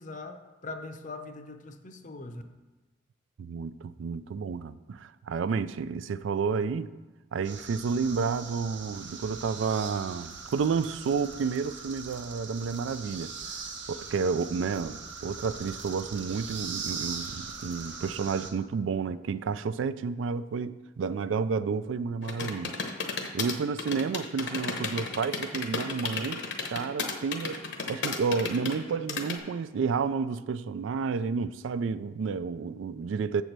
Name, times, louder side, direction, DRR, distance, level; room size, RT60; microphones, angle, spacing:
voice 1, 0.0-2.4, left 3 dB, 40° left, 0.6 m, -41 dB
voice 2, 3.4-6.9 7.3-13.6 13.9-22.8 23.3-27.6 27.9-33.4, right 5 dB, 80° right, 0.3 m, -31 dB
sound 1, 7.4-18.5, right 5 dB, 65° right, 1.0 m, -41 dB
typing on desktop keyboard, 22.2-29.4, left 4 dB, 65° left, 0.9 m, -33 dB
7.3 x 4.5 x 6.6 m
head